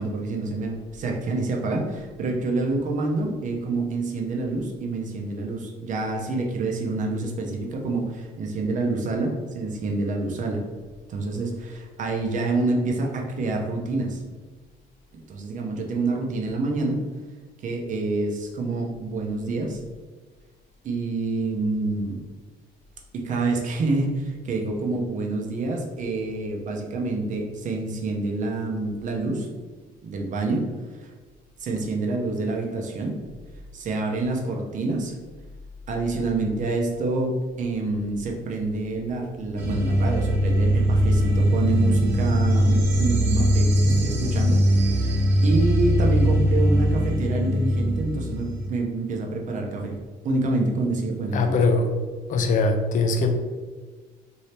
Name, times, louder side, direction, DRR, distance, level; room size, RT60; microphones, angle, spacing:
voice 1, 0.0-10.6 11.1-14.2 15.1-17.0 17.6-19.8 20.8-22.2 23.1-29.5 30.0-30.7 31.0-31.1 31.6-33.1 33.7-35.2 35.9-50.0 50.2-51.5, right 2 dB, 50° right, 1 dB, 0.7 m, -27 dB
sound 1, 39.6-48.7, equal, 80° right, 1.0 m, -21 dB
voice 2, 51.3-52.0 52.3-53.4, left 3 dB, 50° left, 5 dB, 0.5 m, -21 dB
2.8 x 2.7 x 3.2 m, 1.4 s
cardioid pair, 110°, 17 cm